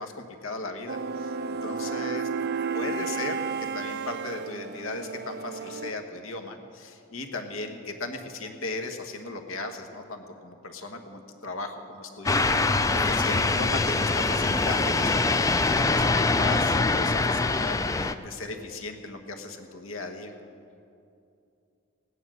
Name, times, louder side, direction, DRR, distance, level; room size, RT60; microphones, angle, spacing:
voice 1, 0.0-2.3 2.7-20.3, left 2 dB, 75° left, 5 dB, 1.3 m, -37 dB
sound 1, 0.9-5.9, right 5 dB, 50° right, 0.5 m, -32 dB
voice 2, 1.7-2.9, left 1 dB, 35° left, 2 dB, 1.9 m, -47 dB
sound 2, 12.3-18.1, left 3 dB, 15° left, 0.4 m, -24 dB
17.5 x 9.8 x 6.3 m, 2.6 s
head